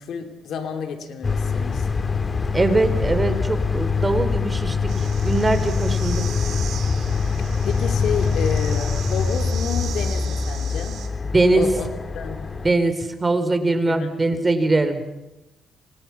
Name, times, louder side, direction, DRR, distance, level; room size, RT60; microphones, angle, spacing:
voice 1, 0.0-1.9 7.6-11.0 11.5-11.9 12.1-12.5 13.9-14.2, left 6 dB, 70° left, 6 dB, 3.1 m, -30 dB
sound 1, 1.2-12.7, left 5 dB, 30° left, 1.9 m, -24 dB
voice 2, 2.5-4.8 5.2-6.2 11.3-11.6 12.6-15.0, right 2 dB, 25° right, 9 dB, 3.7 m, -21 dB
sound 2, 4.9-11.1, right 9 dB, 75° right, 4.2 m, -39 dB
29.5 x 26.0 x 5.9 m, 0.98 s
cardioid pair, 90°, 0 cm